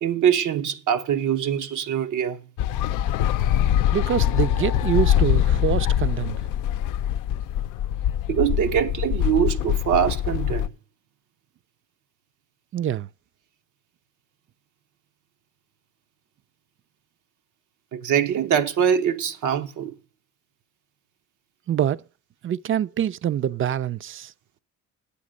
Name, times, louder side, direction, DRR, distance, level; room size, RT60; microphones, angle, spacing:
voice 1, 0.0-2.4 8.3-10.7 17.9-19.9, right 9 dB, 80° right, 1.0 m, -23 dB
sound 1, 2.6-10.7, left 11 dB, 85° left, 0.5 m, -23 dB
voice 2, 3.9-6.4 12.7-13.1 21.7-22.0 22.4-24.3, right 10 dB, 45° right, 0.5 m, -25 dB
8.5 x 8.1 x 6.3 m
cardioid pair, 90°, 30 cm